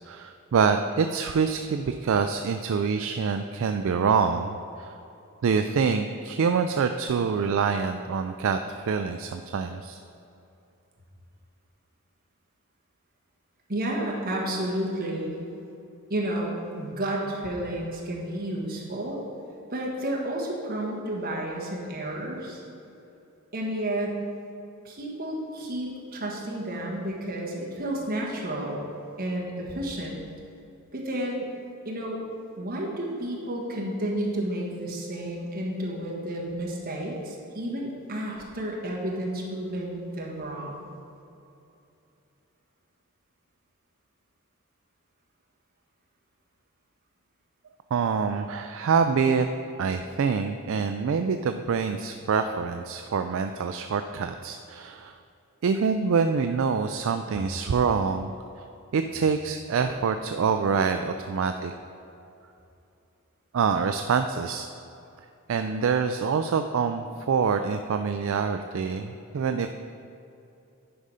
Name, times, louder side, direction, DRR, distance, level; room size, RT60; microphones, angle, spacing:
voice 1, 0.1-4.9 5.4-10.0 47.9-49.5 49.8-55.2 55.6-58.3 58.9-61.7 63.5-64.7 65.5-69.7, right 5 dB, 60° right, 7 dB, 0.3 m, -26 dB
voice 2, 13.7-15.3 16.1-19.2 19.7-22.6 23.5-24.2 24.8-28.8 29.2-30.2 30.9-31.5 31.8-32.2 32.6-40.8, right 1 dB, 45° right, -2 dB, 1.6 m, -31 dB
10.0 x 4.9 x 5.5 m, 2.8 s
head